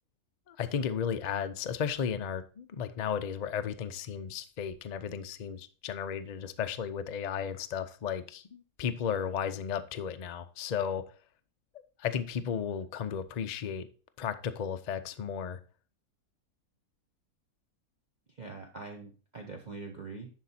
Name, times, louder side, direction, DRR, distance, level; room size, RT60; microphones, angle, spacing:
voice 1, 0.5-11.0 12.0-13.9 14.2-15.6, left 7 dB, 80° left, 9 dB, 0.3 m, -34 dB
voice 2, 18.3-20.3, right 3 dB, 35° right, 2 dB, 0.8 m, -43 dB
11.0 x 4.1 x 4.2 m, 0.38 s
omnidirectional pair, 1.6 m